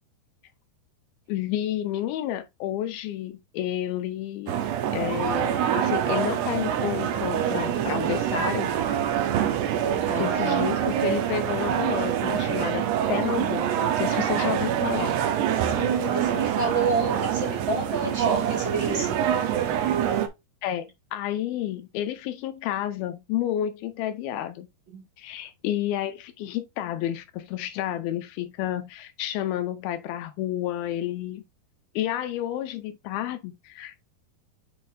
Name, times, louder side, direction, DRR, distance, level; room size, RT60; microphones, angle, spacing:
voice 1, 1.3-4.5 4.9-8.7 10.2-15.1 20.6-24.7 25.2-31.4 32.0-34.0, left 12 dB, 75° left, 2.3 m, -30 dB
sound 1, 4.5-20.3, right 9 dB, 80° right, 3.0 m, -25 dB
voice 2, 9.8-10.3 15.6-19.2 24.9-25.0, right 4 dB, 35° right, 2.1 m, -29 dB
8.4 x 5.2 x 2.7 m
omnidirectional pair, 4.9 m